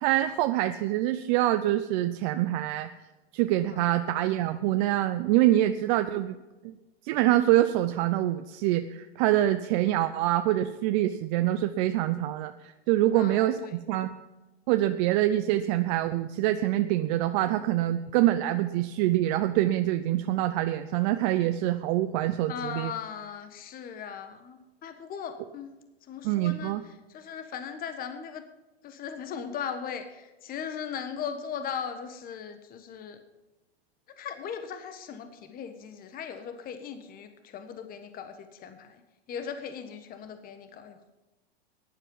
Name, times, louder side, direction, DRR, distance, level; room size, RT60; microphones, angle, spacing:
voice 1, 0.0-2.9 3.3-6.4 6.6-6.7 7.0-14.1 14.7-22.9 26.2-26.8, right 14 dB, 45° right, 9 dB, 0.7 m, -25 dB
voice 2, 13.1-13.8 22.5-28.4 28.8-33.2 34.2-39.0 39.3-41.1, left 7 dB, 30° left, 8 dB, 1.3 m, -38 dB
15.0 x 11.0 x 5.6 m, 1.1 s
hypercardioid pair, 115°, 31 cm